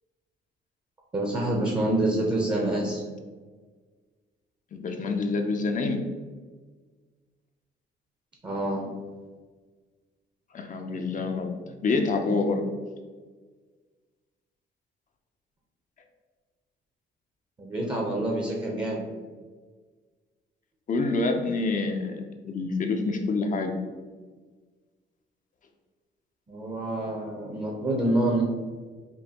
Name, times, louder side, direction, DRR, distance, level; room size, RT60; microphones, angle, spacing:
voice 1, 1.1-3.0 8.4-8.9 17.6-19.0 26.5-28.4, right 1 dB, 25° right, -2 dB, 0.7 m, -27 dB
voice 2, 4.7-6.1 10.5-12.7 20.9-23.7, left 3 dB, 40° left, 4 dB, 0.5 m, -27 dB
5.2 x 2.2 x 2.8 m, 1.4 s
cardioid pair, 90°, 20 cm